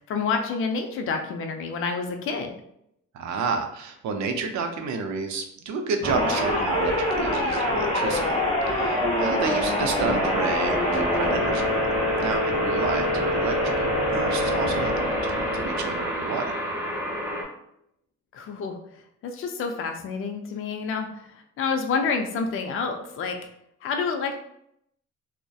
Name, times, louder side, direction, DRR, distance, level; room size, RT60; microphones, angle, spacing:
voice 1, 0.0-2.5 18.3-18.8 19.2-21.2 21.6-23.3 23.8-24.4, left 5 dB, 45° left, 4 dB, 0.4 m, -28 dB
voice 2, 3.1-8.4 8.7-11.9 12.2-16.6, right 4 dB, 70° right, 5 dB, 0.5 m, -30 dB
sound 1, 6.0-16.4, left 1 dB, 15° left, 0.9 m, -25 dB
sound 2, 10.0-17.4, equal, 10° right, 0.6 m, -31 dB
2.6 x 2.1 x 2.3 m, 0.75 s
cardioid pair, 90°, 30 cm